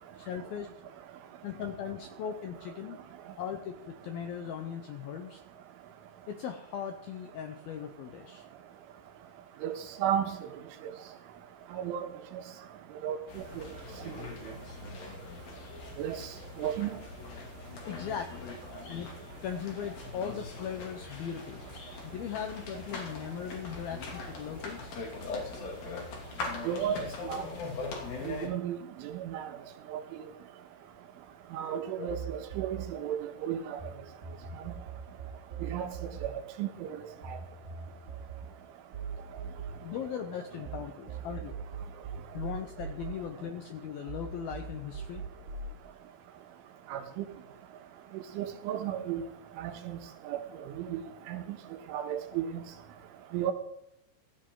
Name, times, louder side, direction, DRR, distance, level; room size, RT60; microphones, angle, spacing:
voice 1, 0.2-0.7 1.4-3.0 3.4-5.4 6.3-8.5 17.9-18.5 18.9-19.1 19.4-21.6 22.0-24.9 31.9-32.1 39.8-41.6 42.3-45.2, left 8 dB, 80° left, 2.2 m, -38 dB
voice 2, 10.0-10.4 11.7-12.1 13.0-13.7 16.0-16.2 16.6-17.0 26.7-27.0 27.2-27.4 28.2-28.8 29.0-29.5 29.9-30.0 31.5-33.8 35.6-35.9 36.2-36.3 36.6-36.9 37.3-37.4 46.9-47.3 48.4-49.2 49.6-50.0 50.3-50.4 50.9-51.0 51.3-51.6 51.9-52.6 53.3-53.5, right 10 dB, 85° right, 3.8 m, -33 dB
sound 1, 13.3-28.5, left 3 dB, 50° left, 4.0 m, -41 dB
sound 2, 32.1-33.9 34.2-40.8 41.1-43.8 44.1-45.7, right 6 dB, 35° right, 2.3 m, -41 dB
16.5 x 14.0 x 3.8 m
omnidirectional pair, 5.5 m